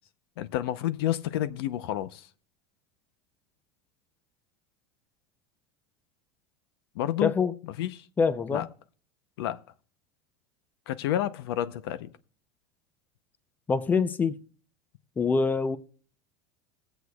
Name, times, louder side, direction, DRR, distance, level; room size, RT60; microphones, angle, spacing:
voice 1, 0.4-2.3 6.9-7.3 7.8-8.1 8.5-8.7 9.4-9.6 10.9-12.1, left 12 dB, 85° left, 0.7 m, -29 dB
voice 2, 7.2-7.5 8.2-8.7 13.7-14.4 15.2-15.8, left 5 dB, 15° left, 0.5 m, -25 dB
21.5 x 8.0 x 2.3 m
supercardioid pair, 155°, 12 cm